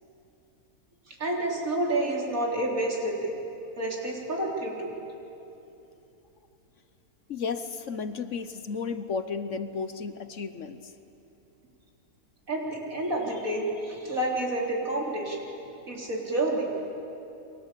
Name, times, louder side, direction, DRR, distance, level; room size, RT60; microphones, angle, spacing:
voice 1, 1.1-3.3 3.8-4.9 12.5-15.4 15.9-16.7, right 1 dB, 60° right, -1 dB, 4.2 m, -29 dB
voice 2, 7.3-10.9, left 5 dB, 60° left, 10 dB, 1.2 m, -33 dB
29.5 x 22.5 x 8.4 m, 3.0 s
omnidirectional pair, 1.6 m